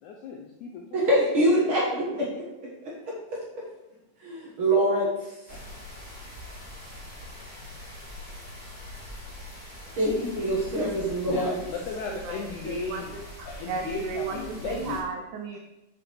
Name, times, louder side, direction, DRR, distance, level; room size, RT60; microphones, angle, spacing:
voice 1, 0.0-1.0 11.3-13.2 13.5-15.0, left 4 dB, 85° left, 1 dB, 1.7 m, -35 dB
voice 2, 0.9-2.4 2.8-2.9 4.2-5.6 10.0-11.6, right 1 dB, 55° right, -4 dB, 1.5 m, -25 dB
sound 1, 5.5-15.0, left 1 dB, 15° left, 2.5 m, -43 dB
voice 3, 12.2-15.6, right 5 dB, 85° right, 4 dB, 1.7 m, -35 dB
9.0 x 6.1 x 3.1 m, 0.99 s
omnidirectional pair, 4.1 m